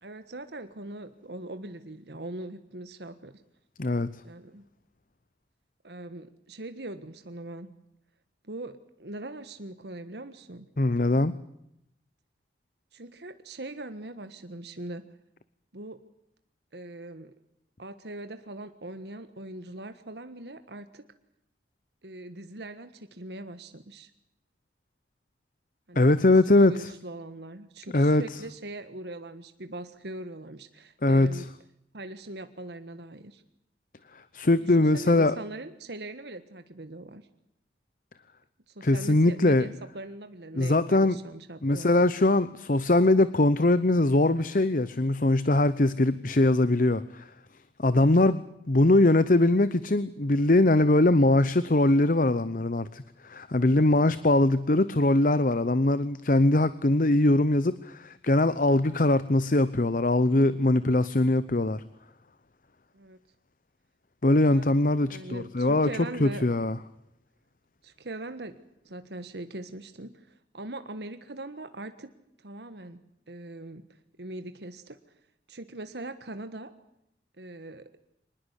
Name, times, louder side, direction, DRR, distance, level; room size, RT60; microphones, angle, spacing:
voice 1, 0.0-3.4 4.2-4.7 5.8-7.7 8.4-10.7 12.9-15.0 15.7-16.0 16.7-17.3 17.8-21.0 22.0-24.1 25.9-26.1 26.5-31.5 31.9-33.4 34.6-37.2 38.7-41.9 46.0-46.2 48.0-48.2 53.8-54.0 62.9-63.2 64.5-64.7 65.1-66.4 67.8-68.6 68.8-72.1 72.4-73.0 73.3-75.0 75.5-76.7 77.4-77.9, right 2 dB, 75° right, 10 dB, 1.5 m, -41 dB
voice 2, 10.8-11.3 26.0-26.9 27.9-28.2 31.0-31.4 34.3-35.4 38.8-39.6 40.5-41.2 41.6-47.3 47.8-48.4 48.7-61.8 64.2-65.9 66.2-66.8, left 2 dB, 50° left, 15 dB, 0.9 m, -22 dB
25.0 x 20.5 x 8.3 m, 0.79 s
head